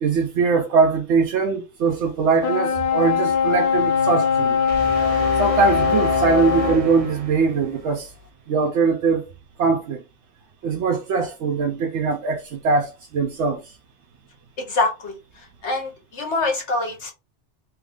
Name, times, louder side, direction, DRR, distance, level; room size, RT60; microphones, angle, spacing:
voice 1, 0.0-4.6 5.4-8.1 8.5-9.3 9.6-10.0 10.6-13.6, right 5 dB, 80° right, 0.9 m, -21 dB
sound 1, 2.4-6.9, left 7 dB, 55° left, 0.6 m, -21 dB
sound 2, 4.7-7.9, right 1 dB, 50° right, 0.4 m, -29 dB
voice 2, 14.7-15.1 15.6-17.1, left 3 dB, 80° left, 1.4 m, -24 dB
3.1 x 2.4 x 3.5 m
omnidirectional pair, 1.2 m